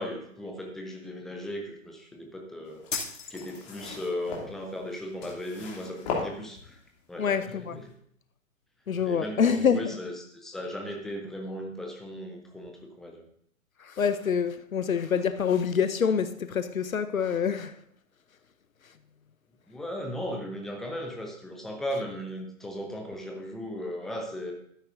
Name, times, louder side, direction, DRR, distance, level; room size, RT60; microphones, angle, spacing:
voice 1, 0.0-6.8 7.1-7.8 9.0-13.2 19.7-24.5, equal, ahead, 0.5 m, -37 dB
sound 1, 2.7-7.0 7.7-7.8, left 4 dB, 30° left, 2.6 m, -37 dB
sound 2, 2.9-3.9, left 4 dB, 65° left, 2.5 m, -35 dB
voice 2, 7.2-7.8 8.9-10.0 13.8-17.8, left 7 dB, 80° left, 0.7 m, -26 dB
12.5 x 9.5 x 2.6 m
figure-of-eight pair, 125°, 40 cm